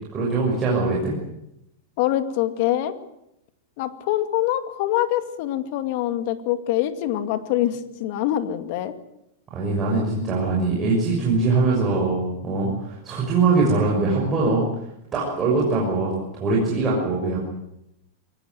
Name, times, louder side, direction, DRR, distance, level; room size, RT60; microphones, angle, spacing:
voice 1, 0.1-1.1 9.5-14.6 15.1-17.4, right 3 dB, 20° right, -4 dB, 6.4 m, -22 dB
voice 2, 2.0-2.9 3.8-8.9, left 13 dB, 50° left, 10 dB, 2.4 m, -24 dB
23.0 x 19.0 x 9.4 m, 0.82 s
supercardioid pair, 160°, 0 cm